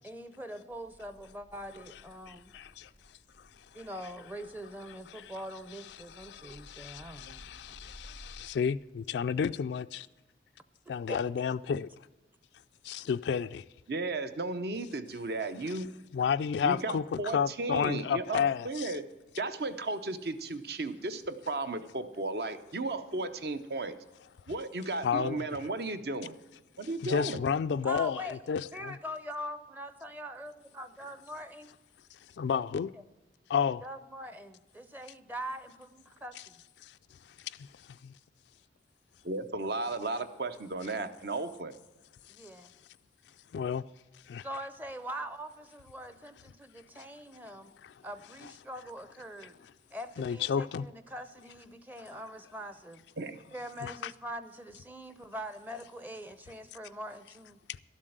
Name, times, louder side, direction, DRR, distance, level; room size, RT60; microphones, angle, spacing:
voice 1, 0.0-2.5 3.7-7.9 11.1-11.2 27.8-31.7 33.8-36.5 42.3-42.7 44.4-47.7 48.0-49.6 49.9-53.0 53.5-57.6, equal, 10° right, 0.6 m, -43 dB
sound 1, 0.7-8.4, equal, 90° right, 2.8 m, -56 dB
voice 2, 2.3-2.9 6.3-10.1 10.9-11.9 12.8-13.6 16.1-18.9 25.0-25.4 27.0-28.9 32.4-32.9 33.5-33.8 36.8-36.9 37.4-37.6 38.0-38.1 43.5-43.8 44.3-44.5 47.8-47.9 50.2-50.9 53.8-54.1, left 7 dB, 70° left, 0.3 m, -31 dB
voice 3, 13.9-15.9 16.6-19.0 19.4-24.0 24.5-26.4 26.8-27.4 39.3-41.7 53.2-53.4, right 2 dB, 60° right, 0.8 m, -34 dB
12.5 x 7.4 x 7.9 m
head